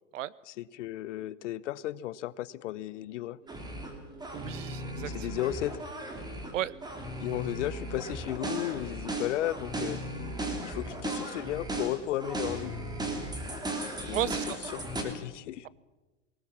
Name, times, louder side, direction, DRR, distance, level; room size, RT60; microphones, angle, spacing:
voice 1, 0.5-3.4 5.1-5.8 7.2-10.0 10.6-12.8 14.0-14.3 14.7-15.7, left 14 dB, 70° left, 20 dB, 0.9 m, -34 dB
sound 1, 3.4-8.6, right 3 dB, 25° right, 7.0 m, -51 dB
sound 2, 3.5-3.9 4.2-6.5 6.8-15.0, right 1 dB, 10° right, 3.0 m, -36 dB
voice 2, 4.3-5.3 6.5-6.7 14.1-14.6, right 13 dB, 85° right, 21 dB, 0.9 m, -33 dB
19.5 x 19.0 x 7.1 m, 1.1 s
supercardioid pair, 135°, 37 cm